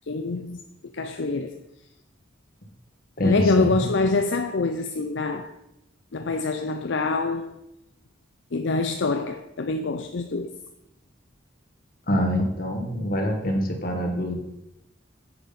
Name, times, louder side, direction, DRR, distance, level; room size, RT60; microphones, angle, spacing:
voice 1, 0.1-0.6 0.9-1.6 3.2-5.5 6.1-7.6 8.5-10.5, left 3 dB, 65° left, 0.5 m, -25 dB
voice 2, 3.2-3.8 12.1-14.4, equal, 45° left, 1.7 m, -25 dB
7.9 x 7.0 x 5.8 m
head